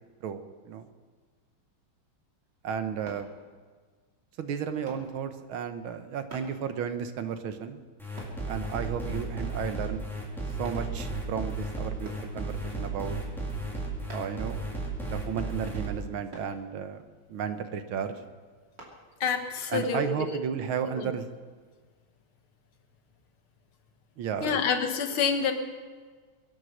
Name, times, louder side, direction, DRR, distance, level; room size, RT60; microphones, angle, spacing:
voice 1, 0.2-0.9 2.6-3.3 4.4-7.8 8.5-10.1 10.6-13.2 14.1-14.6 15.1-17.0 17.3-18.2 19.7-21.3 24.2-24.6, right 7 dB, 75° right, 9 dB, 1.8 m, -33 dB
sound 1, 3.1-3.3 4.9-5.1 6.3-6.6 8.2-8.4 9.4-9.7 10.7-10.9 12.1-12.3 14.1-14.4 16.3-16.6 18.8-19.0 19.6-19.7, right 2 dB, 55° right, 3.5 m, -45 dB
sound 2, 8.0-15.9, right 1 dB, ahead, 3.2 m, -34 dB
voice 2, 19.2-20.3 20.9-21.1 24.4-25.5, left 6 dB, 80° left, 6 dB, 2.2 m, -28 dB
23.5 x 9.3 x 6.5 m, 1.5 s
omnidirectional pair, 2.3 m